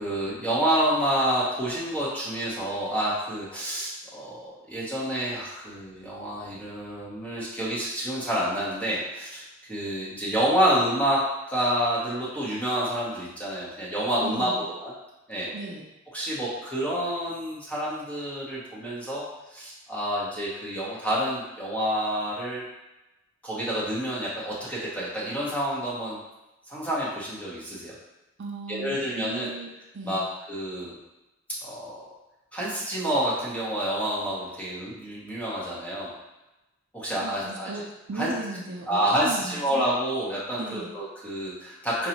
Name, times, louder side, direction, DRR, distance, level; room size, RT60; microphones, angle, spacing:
voice 1, 0.0-9.4 9.7-14.9 15.3-15.5 16.1-19.2 19.5-22.7 23.4-26.2 26.7-27.9 28.7-29.5 30.0-31.0 31.6-32.0 32.5-36.1 36.9-37.7 38.2-38.3 38.9-42.1, equal, 5° left, -7 dB, 0.9 m, -28 dB
voice 2, 14.2-14.6 15.5-15.8 28.4-29.7 29.9-30.3 37.2-37.8 38.1-39.9 40.6-40.9, right 3 dB, 55° right, -1 dB, 0.5 m, -36 dB
5.1 x 2.3 x 2.9 m, 1.0 s
head